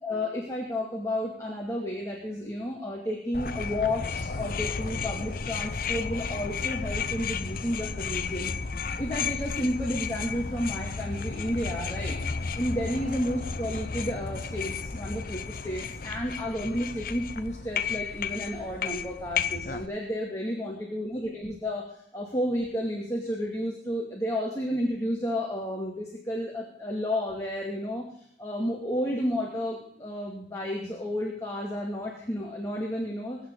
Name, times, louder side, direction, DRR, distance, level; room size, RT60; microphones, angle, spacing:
voice 1, 0.0-28.1 28.4-33.4, left 1 dB, 15° left, -3 dB, 2.4 m, -32 dB
sound 1, 3.3-19.9, left 5 dB, 50° left, 0.7 m, -33 dB
23.0 x 8.9 x 4.0 m, 0.66 s
head